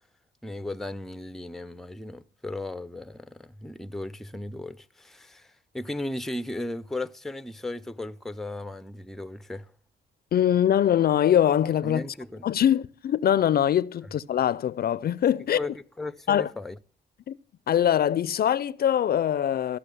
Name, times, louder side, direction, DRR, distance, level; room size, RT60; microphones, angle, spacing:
voice 1, 0.4-9.7 11.8-12.5 15.6-16.8, left 2 dB, ahead, 0.5 m, -36 dB
voice 2, 10.3-12.0 12.4-15.6 16.3-16.5 17.3-17.4 17.7-19.8, left 10 dB, 50° left, 0.5 m, -23 dB
14.5 x 6.2 x 7.9 m
cardioid pair, 90°, 20 cm